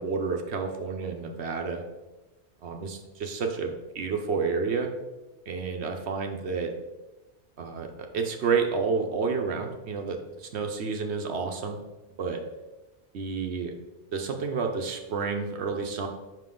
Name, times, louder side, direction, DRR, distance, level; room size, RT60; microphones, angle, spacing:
voice 1, 0.0-1.8 2.6-5.0 5.5-6.7 7.6-11.8 12.2-12.4 13.1-13.7 14.1-16.1, right 5 dB, 75° right, 4 dB, 1.0 m, -30 dB
5.6 x 5.3 x 3.7 m, 1.1 s
omnidirectional pair, 1.2 m